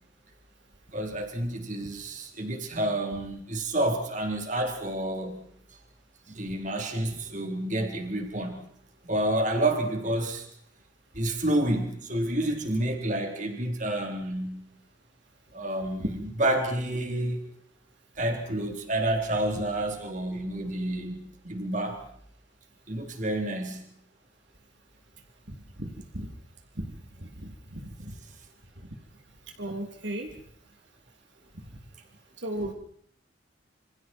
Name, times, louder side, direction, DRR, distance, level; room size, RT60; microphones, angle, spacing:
voice 1, 0.9-5.4 6.3-8.7 9.0-10.5 11.1-14.7 15.5-17.4 18.2-22.0 22.9-23.9, right 1 dB, 40° right, 4 dB, 4.0 m, -29 dB
voice 2, 27.4-28.1 29.6-30.3 31.7-31.8 32.4-32.7, right 1 dB, 70° right, 3 dB, 3.3 m, -34 dB
28.5 x 26.0 x 4.6 m, 0.65 s
head